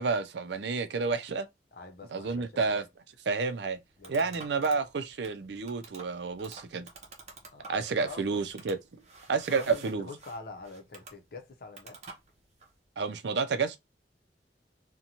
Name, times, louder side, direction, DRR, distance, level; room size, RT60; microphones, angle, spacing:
voice 1, 0.0-1.5 2.1-2.8 3.3-3.8 4.1-6.9 7.7-8.8 9.3-10.1 13.0-13.8, right 4 dB, 75° right, 0.5 m, -30 dB
voice 2, 1.7-2.8 4.0-4.4 7.5-8.3 9.3-12.0, left 3 dB, 55° left, 0.7 m, -46 dB
sound 1, 3.3-12.8, right 3 dB, 40° right, 0.7 m, -51 dB
2.5 x 2.2 x 2.9 m
head